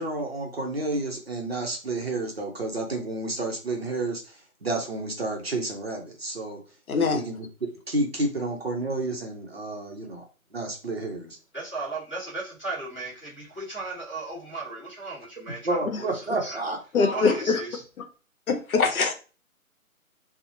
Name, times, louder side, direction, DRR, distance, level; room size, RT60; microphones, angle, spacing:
voice 1, 0.0-6.6 7.0-10.2 10.5-11.3 15.6-17.4, right 2 dB, 45° right, 1 dB, 0.6 m, -30 dB
voice 2, 6.9-7.2 16.9-17.6 18.5-19.1, left 4 dB, 75° left, 6 dB, 0.7 m, -22 dB
voice 3, 11.5-16.0 16.4-16.6 17.1-17.8, right 2 dB, 5° left, -16 dB, 1.0 m, -36 dB
2.8 x 2.0 x 2.6 m, 0.35 s
hypercardioid pair, 175°, 43 cm